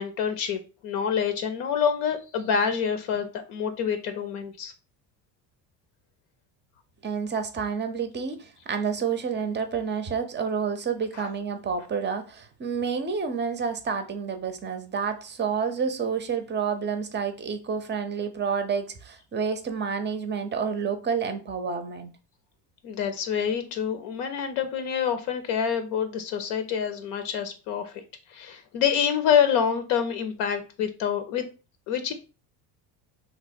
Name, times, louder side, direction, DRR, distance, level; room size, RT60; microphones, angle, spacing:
voice 1, 0.0-4.7 11.2-11.3 22.8-28.0 28.3-31.4 31.9-32.1, left 7 dB, 70° left, 0.7 m, -27 dB
voice 2, 7.0-22.1, right 6 dB, 25° right, 0.5 m, -29 dB
3.0 x 2.2 x 4.2 m
supercardioid pair, 85°, 48 cm